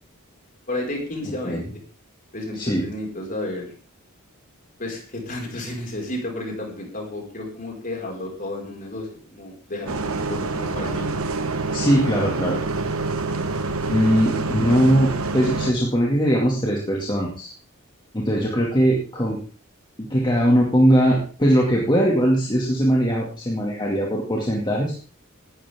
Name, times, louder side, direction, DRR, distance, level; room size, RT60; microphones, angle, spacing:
voice 1, 0.7-1.7 2.3-3.7 4.8-10.0 10.3-11.1 14.2-14.4, left 1 dB, 40° left, 0 dB, 5.6 m, -32 dB
Bus, 9.9-15.7, right 3 dB, 70° right, 1.5 m, -26 dB
voice 2, 11.7-12.6 13.9-17.5 18.1-19.4 20.0-24.9, equal, 20° left, -3 dB, 2.5 m, -20 dB
18.0 x 12.0 x 3.8 m, 0.39 s
head